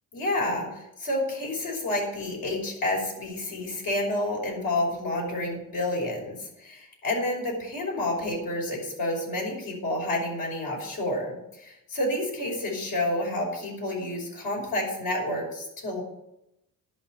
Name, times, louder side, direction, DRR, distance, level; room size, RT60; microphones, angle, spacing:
voice 1, 0.1-11.3 11.6-16.0, left 1 dB, 80° left, -1 dB, 5.5 m, -29 dB
11.0 x 5.9 x 8.9 m, 0.83 s
cardioid pair, 105°, 34 cm